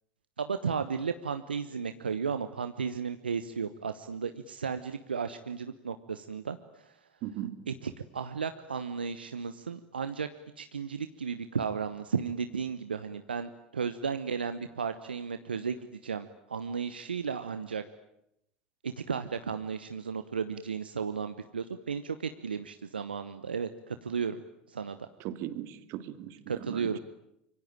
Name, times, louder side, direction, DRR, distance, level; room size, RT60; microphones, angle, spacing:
voice 1, 0.4-6.9 7.7-10.3 10.6-17.8 18.8-24.4 24.7-25.1 26.5-27.0, right 6 dB, 85° right, 10 dB, 1.0 m, -34 dB
voice 2, 7.2-7.6 25.2-26.9, right 12 dB, 55° right, 12 dB, 2.2 m, -38 dB
26.0 x 24.0 x 9.0 m, 0.79 s
figure-of-eight pair, 75°, 5 cm